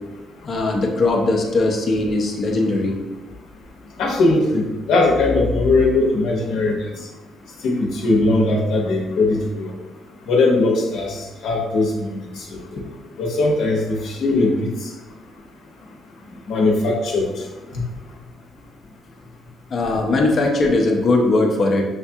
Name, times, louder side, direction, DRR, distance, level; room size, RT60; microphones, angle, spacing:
voice 1, 0.4-3.0 12.7-12.8 19.7-21.8, left 2 dB, 35° left, 1 dB, 0.6 m, -19 dB
voice 2, 4.0-4.6 4.9-6.8 7.6-7.8 8.0-9.7 10.3-11.2 11.4-11.9 13.2-14.7 16.5-17.3, left 2 dB, 75° left, -1 dB, 0.9 m, -19 dB
6.3 x 2.3 x 2.7 m, 1.1 s
cardioid pair, 155°, 0 cm